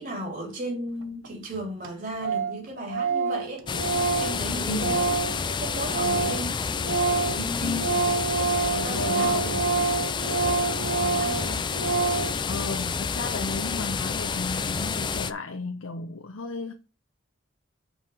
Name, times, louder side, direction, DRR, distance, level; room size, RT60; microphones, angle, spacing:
voice 1, 0.0-5.1 5.5-6.5 7.2-7.9 8.7-9.6 10.4-11.7, right 1 dB, 40° right, 3.1 m, -35 dB
Organ, 1.2-1.3 1.5-1.6 1.8-1.9 2.2-2.6 2.9-6.5 6.7-12.4, right 4 dB, 75° right, 0.9 m, -27 dB
sound 1, 3.7-15.3, left 5 dB, 20° left, 0.3 m, -29 dB
voice 2, 4.7-5.0 7.6-8.1 8.9-9.5 10.9-11.0 12.5-16.7, left 3 dB, 80° left, 0.7 m, -34 dB
5.6 x 4.7 x 6.3 m
head